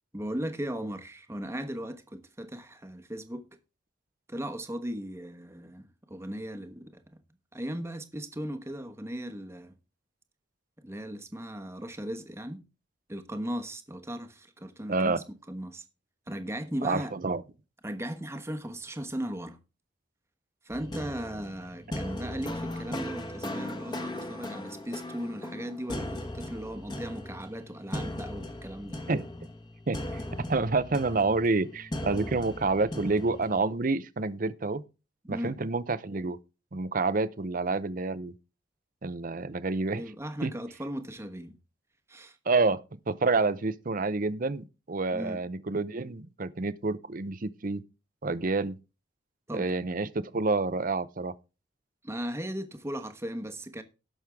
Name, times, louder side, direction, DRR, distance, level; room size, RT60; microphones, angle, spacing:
voice 1, 0.1-3.5 4.3-7.2 7.5-9.7 10.8-12.6 13.1-15.8 16.3-17.1 17.8-19.6 20.6-29.0 35.2-35.6 39.9-41.6 42.1-42.4 45.1-45.4 49.5-49.7 52.0-53.8, equal, 15° right, 1.1 m, -37 dB
voice 2, 14.9-15.2 16.8-17.4 29.1-29.2 29.9-30.2 30.5-34.8 35.3-36.4 36.7-38.3 39.0-40.0 40.4-40.5 42.5-42.8 43.1-47.8 48.2-48.7 49.5-51.3, right 3 dB, 45° right, 0.7 m, -28 dB
sound 1, 20.7-33.6, left 1 dB, 25° left, 1.3 m, -38 dB
17.5 x 6.3 x 3.5 m
head